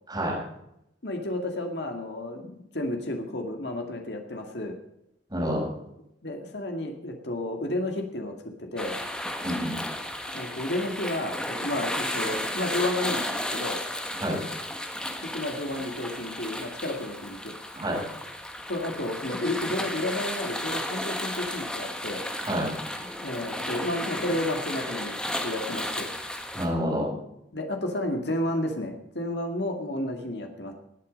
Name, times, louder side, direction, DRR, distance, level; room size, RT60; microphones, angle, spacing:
voice 1, 1.0-4.7 6.2-8.3 8.6-9.0 10.3-13.8 15.2-17.6 18.7-22.2 23.2-26.1 27.5-30.7, left 1 dB, 65° left, 3 dB, 2.1 m, -31 dB
voice 2, 5.3-5.7 9.4-9.8 14.2-14.4 17.7-18.0 22.4-22.7 26.5-27.1, equal, 20° right, -2 dB, 5.8 m, -28 dB
sound 1, 8.8-26.7, left 1 dB, 5° left, 1.4 m, -33 dB
19.0 x 8.5 x 5.3 m, 0.79 s
head